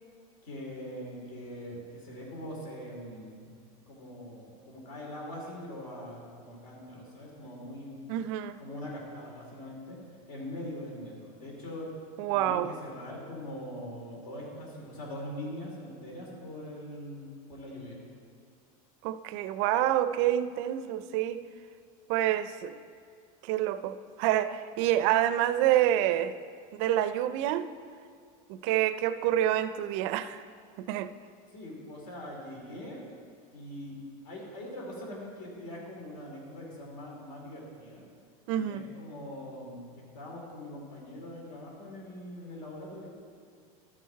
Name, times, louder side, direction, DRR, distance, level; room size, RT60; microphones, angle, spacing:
voice 1, 0.4-3.4 3.9-8.1 8.6-10.0 10.3-11.9 12.3-18.0 31.5-33.0 33.5-34.0 34.2-38.0 38.5-43.1, left 1 dB, 65° left, -2 dB, 2.9 m, -42 dB
voice 2, 8.1-8.6 12.2-12.7 19.0-21.4 22.1-22.8 23.4-26.3 26.7-27.7 28.5-30.4 30.8-31.1 38.5-38.8, right 12 dB, 55° right, 12 dB, 0.4 m, -27 dB
12.5 x 6.4 x 4.6 m, 2.1 s
supercardioid pair, 160°, 18 cm